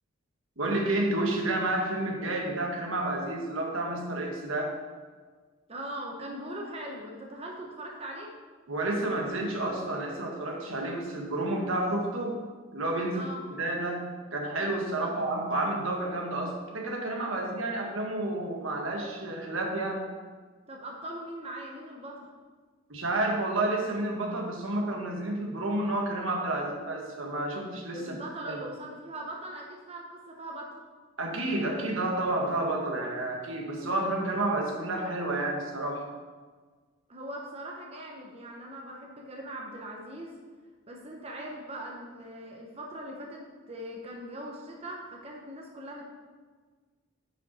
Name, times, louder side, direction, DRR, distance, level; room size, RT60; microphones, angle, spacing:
voice 1, 0.6-4.8 8.7-12.3 12.7-13.3 13.6-14.0 14.3-20.1 22.9-28.2 28.5-28.6 31.2-36.0, right 2 dB, 80° right, 0 dB, 1.5 m, -30 dB
voice 2, 5.7-8.3 13.1-13.4 14.8-15.1 17.3-17.5 20.7-22.3 27.9-30.8 37.1-40.4 40.9-46.0, right 1 dB, 30° right, 0 dB, 0.8 m, -41 dB
9.3 x 5.4 x 4.2 m, 1.5 s
head